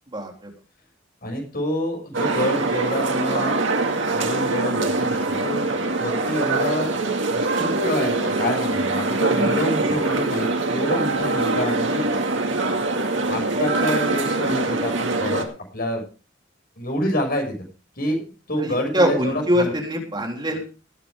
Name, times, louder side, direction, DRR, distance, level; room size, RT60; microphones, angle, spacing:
voice 1, 0.1-0.5 9.3-9.6 18.6-20.6, equal, 25° right, 1 dB, 3.6 m, -23 dB
voice 2, 1.2-3.6 4.1-6.9 7.3-12.0 13.2-16.1 16.8-17.7 18.0-18.2 18.5-19.7, left 1 dB, 50° left, 2 dB, 6.8 m, -27 dB
sound 1, 2.1-15.4, right 2 dB, 70° right, 2.3 m, -23 dB
19.5 x 9.2 x 3.7 m, 0.34 s
head